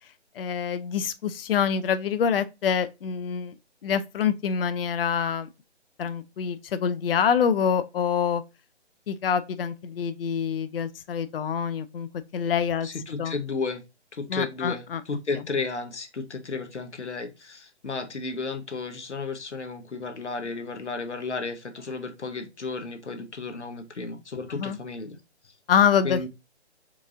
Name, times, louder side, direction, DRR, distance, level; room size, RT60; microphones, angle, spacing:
voice 1, 0.4-3.5 3.8-5.5 6.0-8.4 9.1-12.1 12.3-12.9 13.2-13.4 14.3-15.0 24.5-24.8 25.7-26.3, left 7 dB, 55° left, 0.4 m, -26 dB
voice 2, 12.8-13.8 14.1-25.2 26.0-26.3, left 4 dB, 90° left, 0.9 m, -33 dB
4.6 x 2.5 x 2.5 m
figure-of-eight pair, 145°, 34 cm